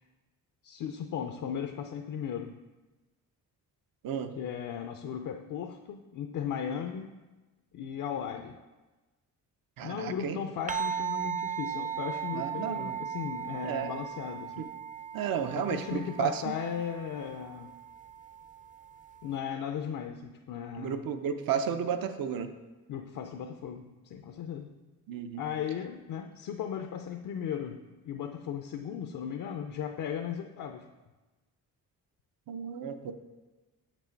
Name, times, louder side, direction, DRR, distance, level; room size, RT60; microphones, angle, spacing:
voice 1, 0.6-2.6 4.4-7.2 7.7-8.6 9.8-14.7 15.6-17.7 19.2-21.0 22.9-24.7 25.4-30.9, left 8 dB, 60° left, 5 dB, 0.5 m, -36 dB
voice 2, 9.8-10.4 12.3-13.0 13.6-13.9 15.1-16.5 20.8-22.5 25.1-25.4 32.5-33.1, right 8 dB, 70° right, 9 dB, 0.7 m, -32 dB
sound 1, 10.7-19.4, right 7 dB, 25° right, 0.5 m, -37 dB
6.9 x 6.0 x 4.5 m, 1.2 s
cardioid pair, 100°, 36 cm